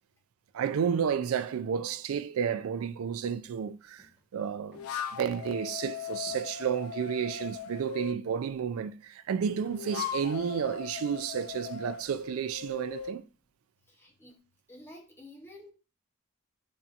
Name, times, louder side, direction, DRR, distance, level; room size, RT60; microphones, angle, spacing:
voice 1, 0.5-4.8 5.1-13.2, right 7 dB, 80° right, 0.3 m, -31 dB
sound 1, 3.2-3.5 3.9-4.2 4.7-5.0 5.5-5.7 6.2-7.2 7.7-8.0 8.3-8.8 9.3-9.5 10.2-10.4, equal, 10° right, 1.1 m, -57 dB
sound 2, 4.7-8.2 9.5-13.2, left 8 dB, 85° left, 0.4 m, -39 dB
voice 2, 13.9-14.4 14.7-15.7, left 1 dB, 10° left, 0.7 m, -50 dB
5.6 x 2.7 x 2.4 m
head